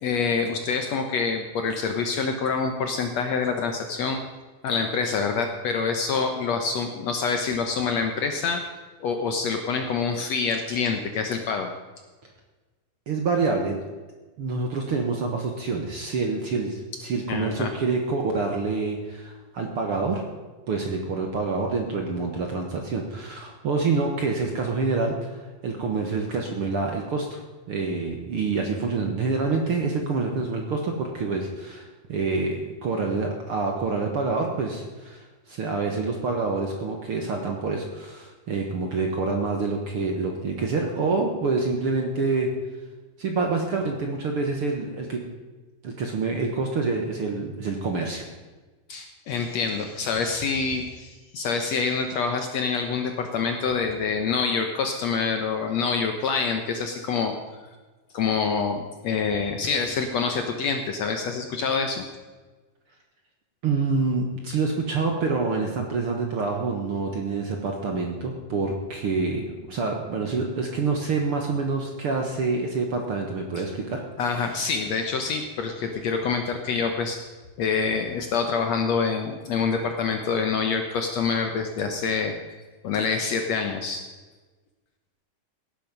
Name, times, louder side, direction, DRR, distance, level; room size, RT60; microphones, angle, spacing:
voice 1, 0.0-4.2 4.6-8.6 9.0-11.7 17.3-17.7 48.9-57.4 58.1-62.1 74.2-77.2 77.6-82.3 82.8-84.0, left 5 dB, 65° left, 5 dB, 1.8 m, -26 dB
voice 2, 13.1-13.8 14.4-20.3 20.7-27.4 27.7-31.8 32.1-42.5 43.2-45.3 45.8-48.2 63.6-74.0, right 4 dB, 55° right, 2 dB, 1.8 m, -27 dB
17.0 x 10.5 x 5.3 m, 1.3 s
omnidirectional pair, 4.0 m